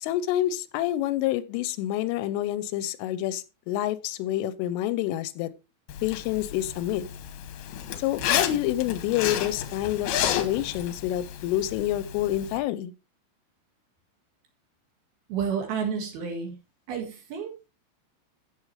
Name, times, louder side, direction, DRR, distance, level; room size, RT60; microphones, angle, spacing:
voice 1, 0.0-5.5 6.0-7.1 8.0-12.9, left 13 dB, 90° left, 3.3 m, -28 dB
Zipper (clothing), 5.9-12.6, left 10 dB, 75° left, 2.4 m, -31 dB
voice 2, 15.3-16.6 16.9-17.7, right 6 dB, 60° right, 3.4 m, -30 dB
13.0 x 7.8 x 3.2 m
omnidirectional pair, 5.7 m